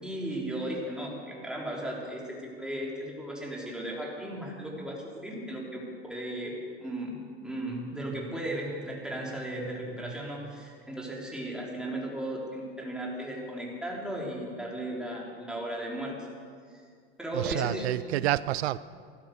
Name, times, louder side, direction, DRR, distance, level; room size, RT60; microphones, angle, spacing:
voice 1, 0.0-6.5 6.8-16.3 16.7-16.8 17.2-17.9, right 1 dB, ahead, -3 dB, 4.1 m, -36 dB
voice 2, 17.3-18.8, right 15 dB, 80° right, 17 dB, 0.5 m, -28 dB
16.0 x 12.5 x 6.6 m, 2.2 s
hypercardioid pair, 95°, 31 cm